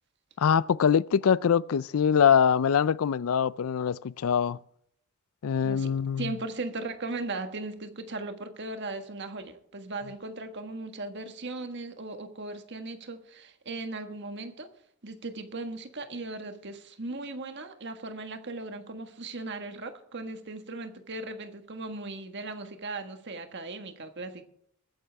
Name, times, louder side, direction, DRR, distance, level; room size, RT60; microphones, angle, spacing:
voice 1, 0.4-4.6 5.4-6.3, left 7 dB, 70° left, 0.4 m, -23 dB
voice 2, 6.2-14.7 15.0-24.4, right 2 dB, 50° right, 1.6 m, -38 dB
21.0 x 10.0 x 3.5 m
head